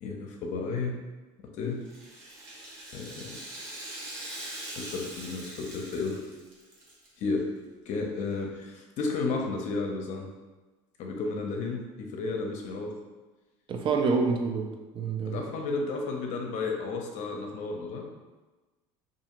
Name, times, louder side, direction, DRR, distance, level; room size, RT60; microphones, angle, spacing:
voice 1, 0.0-1.0 1.4-1.8 2.9-3.4 4.8-6.2 7.2-7.5 7.9-10.3 11.0-13.0 15.2-18.1, left 3 dB, 60° left, 1 dB, 0.6 m, -32 dB
Rattle (instrument), 1.8-7.1 7.4-7.5 8.3-8.4, right 1 dB, 70° right, 1.0 m, -42 dB
voice 2, 13.7-15.4, right 4 dB, 35° right, 3 dB, 0.4 m, -27 dB
2.4 x 2.4 x 2.9 m, 1.2 s
supercardioid pair, 100°, 14 cm